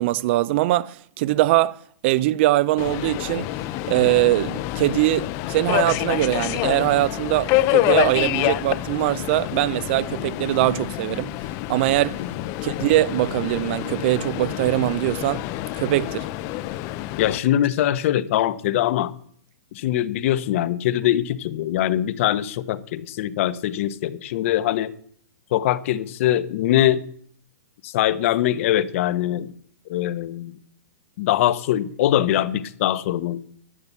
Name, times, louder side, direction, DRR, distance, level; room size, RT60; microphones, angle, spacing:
voice 1, 0.0-3.5 3.9-11.3 11.7-12.2 12.6-15.4 15.8-16.3, right 17 dB, 40° right, 0.5 m, -22 dB
Subway metro underground, 2.8-17.4, left 16 dB, 30° left, 0.6 m, -27 dB
voice 2, 17.2-19.1 19.7-24.9 25.5-27.0 27.8-29.5 29.9-30.5 31.2-33.4, left 12 dB, 45° left, 1.0 m, -22 dB
11.5 x 9.6 x 8.2 m
hypercardioid pair, 150°, 10 cm